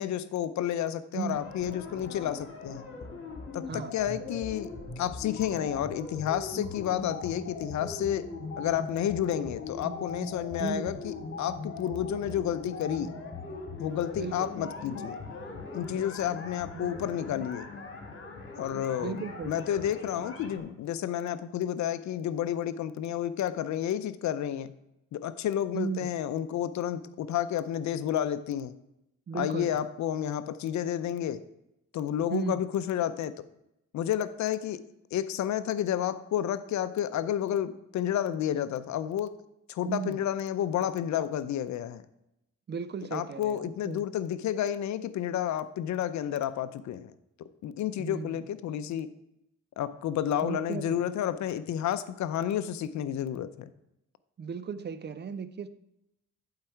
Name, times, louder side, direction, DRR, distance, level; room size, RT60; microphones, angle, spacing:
voice 1, 0.0-2.9 3.5-8.3 8.6-13.1 13.8-15.2 15.7-17.7 18.6-24.7 25.1-28.7 29.3-31.4 31.9-33.4 33.9-34.8 35.1-39.3 39.7-42.0 43.1-47.1 47.4-49.1 49.8-53.7, left 10 dB, 70° left, 13 dB, 0.6 m, -31 dB
voice 2, 1.1-1.5 3.7-4.0 10.6-11.0 14.2-14.5 16.7-17.1 19.0-19.7 25.7-26.1 29.3-29.8 32.3-32.6 39.8-40.2 42.7-44.0 48.0-48.3 50.4-51.0 54.4-55.7, right 6 dB, 35° right, 13 dB, 0.5 m, -36 dB
sound 1, 1.3-20.6, left 3 dB, 45° left, 2.1 m, -40 dB
11.0 x 4.8 x 4.5 m, 0.85 s
cardioid pair, 90°, 30 cm